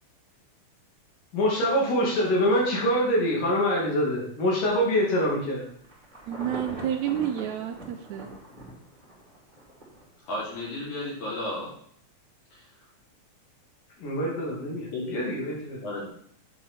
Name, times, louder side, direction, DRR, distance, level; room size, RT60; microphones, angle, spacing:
voice 1, 1.3-5.6 14.0-15.8, equal, 85° left, -3 dB, 4.1 m, -25 dB
Insect / Thunder / Rain, 5.7-10.0 10.5-10.6, right 1 dB, 15° right, 2.2 m, -42 dB
voice 2, 6.3-8.3, right 10 dB, 80° right, 6 dB, 1.7 m, -30 dB
voice 3, 10.2-11.7 12.5-12.7 14.9-15.2 15.8-16.1, left 1 dB, 65° left, -6 dB, 4.9 m, -33 dB
8.1 x 6.6 x 4.2 m, 0.63 s
omnidirectional pair, 3.7 m